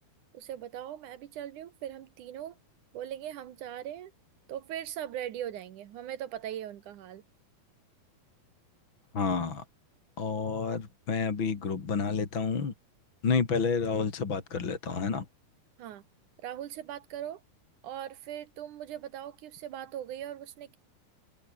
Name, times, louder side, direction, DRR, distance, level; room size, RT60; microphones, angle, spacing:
voice 1, 0.3-2.6 2.9-4.1 4.5-7.2 15.8-16.0 16.4-17.4 17.8-20.8, right 11 dB, 65° right, 2.5 m, -40 dB
voice 2, 9.1-9.6 10.2-12.7 13.2-15.2, left 5 dB, 35° left, 3.1 m, -29 dB
omnidirectional pair, 4.3 m